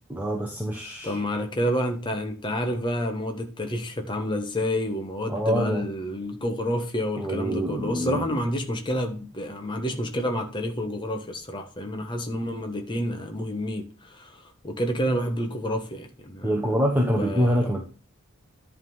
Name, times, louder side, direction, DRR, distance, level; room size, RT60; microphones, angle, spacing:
voice 1, 0.1-1.2 5.3-5.9 7.2-8.4 16.4-17.8, equal, 10° right, 0.9 m, -25 dB
voice 2, 1.0-16.6 17.2-17.6, equal, 20° left, 1.2 m, -29 dB
10.5 x 3.7 x 5.5 m
head